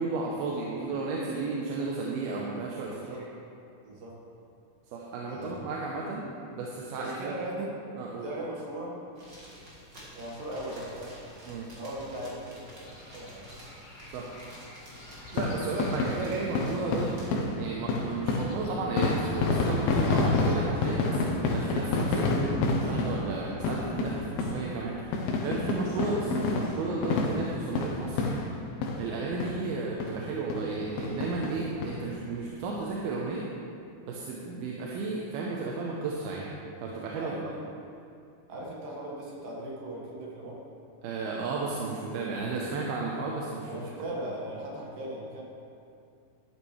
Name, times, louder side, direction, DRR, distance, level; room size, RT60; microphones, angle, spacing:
voice 1, 0.0-3.2 4.9-7.4 8.0-8.3 11.5-11.7 14.1-14.3 15.3-28.6 28.9-33.5 34.0-36.5 36.8-37.3 41.0-43.7, right 3 dB, 80° right, -3 dB, 2.8 m, -33 dB
voice 2, 2.8-3.2 3.8-4.2 5.3-5.6 7.0-7.8 8.2-9.0 10.1-11.2 11.8-13.5 37.2-37.6 38.5-40.6 43.7-45.4, right 1 dB, 65° right, -3 dB, 3.3 m, -38 dB
sound 1, 9.2-17.3, equal, 30° right, 2.6 m, -49 dB
sound 2, 12.9-20.6, left 1 dB, 45° left, 4.2 m, -52 dB
sound 3, 15.3-29.1 29.4-29.6 30.0-30.1 30.5-30.7 31.0-31.9 32.3-32.4 32.6-32.7, left 3 dB, 85° left, 2.9 m, -29 dB
12.5 x 11.5 x 3.3 m, 2.5 s
omnidirectional pair, 4.4 m